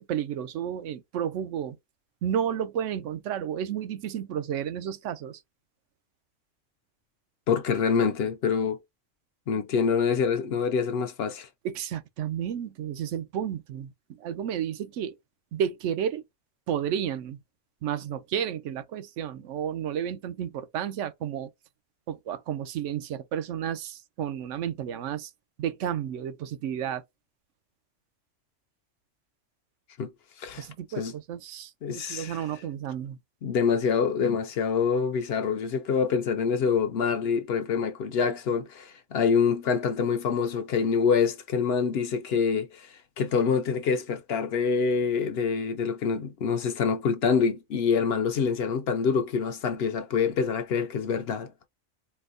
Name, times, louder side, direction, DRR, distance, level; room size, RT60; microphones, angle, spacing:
voice 1, 0.1-1.8 2.2-5.4 11.6-15.2 15.5-16.2 16.7-17.4 17.8-21.5 22.1-25.3 25.6-27.0 30.6-33.2, right 9 dB, 80° right, 0.9 m, -32 dB
voice 2, 7.5-8.8 9.5-11.5 30.0-30.1 30.4-30.6 31.0-31.1 31.8-32.4 33.4-42.9 43.2-51.5, left 6 dB, 65° left, 0.7 m, -26 dB
4.3 x 2.0 x 2.5 m
omnidirectional pair, 1.3 m